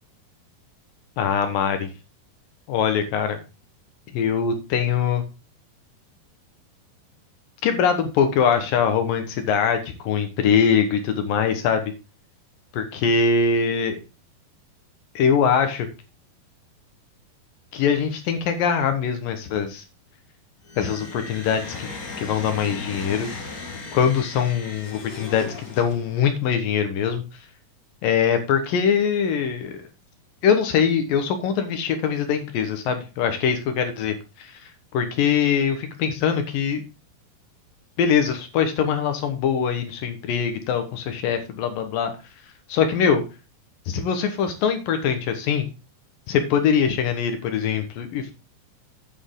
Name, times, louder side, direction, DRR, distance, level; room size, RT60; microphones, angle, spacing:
voice 1, 1.2-1.9 2.7-3.4 4.1-5.2 7.6-11.8 12.7-14.0 15.2-15.9 17.7-19.8 20.8-21.9 22.2-23.3 23.9-27.2 28.0-29.7 30.4-34.5 34.9-36.8 38.0-42.1 42.7-43.2 43.9-45.7 46.3-48.3, left 7 dB, 70° left, 7 dB, 2.9 m, -22 dB
sound 1, 20.6-26.3, left 4 dB, 40° left, 1.4 m, -37 dB
8.7 x 7.8 x 3.8 m, 0.29 s
omnidirectional pair, 4.3 m